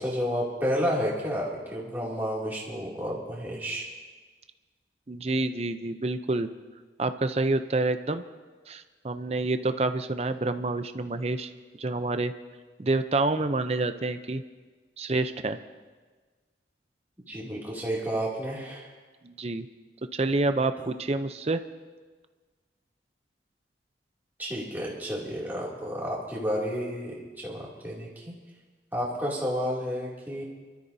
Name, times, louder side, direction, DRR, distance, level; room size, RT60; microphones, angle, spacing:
voice 1, 0.0-3.9 17.3-18.9 20.8-20.9 24.4-28.3 28.9-30.4, equal, 10° right, -5 dB, 2.6 m, -31 dB
voice 2, 5.1-6.5 7.0-8.2 8.7-11.5 11.8-12.3 12.8-14.4 15.0-15.6 19.2-19.7 20.1-21.6, right 2 dB, 35° right, 9 dB, 0.6 m, -28 dB
26.5 x 13.0 x 2.7 m, 1.4 s
head